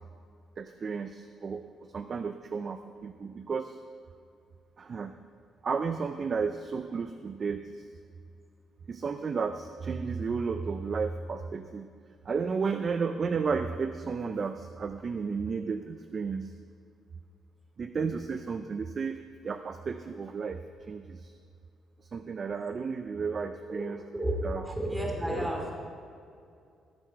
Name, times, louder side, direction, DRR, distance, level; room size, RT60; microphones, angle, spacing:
voice 1, 0.6-3.8 4.8-5.1 5.6-7.9 8.9-11.9 12.3-16.5 17.8-19.2 19.4-21.3 22.0-24.0 24.4-24.6, right 5 dB, 45° right, 9 dB, 0.5 m, -33 dB
voice 2, 24.1-25.7, right 1 dB, 10° right, 0 dB, 2.5 m, -31 dB
16.0 x 7.3 x 4.6 m, 2.4 s
cardioid pair, 90°, 0 cm